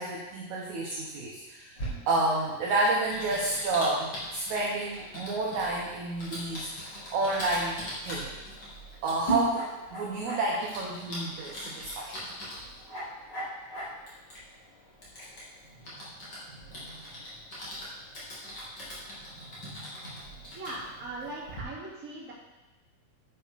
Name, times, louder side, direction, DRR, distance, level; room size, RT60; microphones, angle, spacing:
voice 1, 0.0-1.8 2.1-6.7 7.1-8.3 9.0-12.3 16.8-17.0 19.6-20.1, right 2 dB, 65° right, -2 dB, 2.2 m, -30 dB
Typing, 1.8-21.6, right 1 dB, 30° left, 2.9 m, -40 dB
voice 2, 20.5-22.3, right 2 dB, 25° right, -8 dB, 3.0 m, -39 dB
10.0 x 8.0 x 4.1 m, 1.1 s
omnidirectional pair, 4.2 m